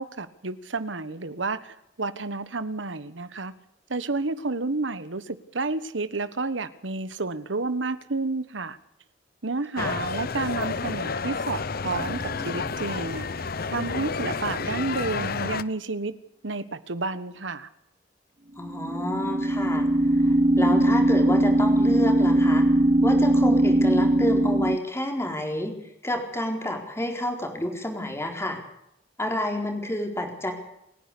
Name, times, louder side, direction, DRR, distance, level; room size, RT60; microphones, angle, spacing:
voice 1, 0.0-3.5 3.9-8.8 9.4-13.3 13.7-16.1 16.4-17.7, right 3 dB, 85° right, 13 dB, 1.4 m, -30 dB
sound 1, 9.8-15.6, left 4 dB, 55° left, 0.9 m, -30 dB
sound 2, 12.0-12.5 18.6-24.8, right 1 dB, 40° right, 0.9 m, -20 dB
voice 2, 18.6-22.7 23.0-25.7 26.0-28.6 29.2-30.5, left 1 dB, 15° left, 3 dB, 4.2 m, -29 dB
29.0 x 10.5 x 8.5 m, 0.79 s
head